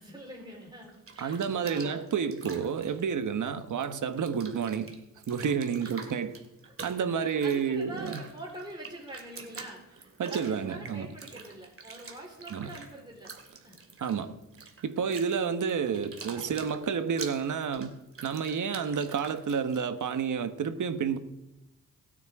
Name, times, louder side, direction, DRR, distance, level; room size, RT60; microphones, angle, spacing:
voice 1, 0.0-2.1 5.8-6.1 7.2-13.3 13.6-13.8 14.6-14.7, right 1 dB, 15° right, 4.5 m, -45 dB
Bathtub (filling or washing), 0.8-3.9 4.1-20.1, right 4 dB, 45° right, 2.7 m, -47 dB
voice 2, 1.2-4.9 5.3-6.3 6.8-8.1 10.2-11.1 12.5-12.7 14.0-14.4 14.8-17.9 18.2-21.2, right 6 dB, 65° right, 1.4 m, -30 dB
26.5 x 9.3 x 3.7 m
supercardioid pair, 55°, 32 cm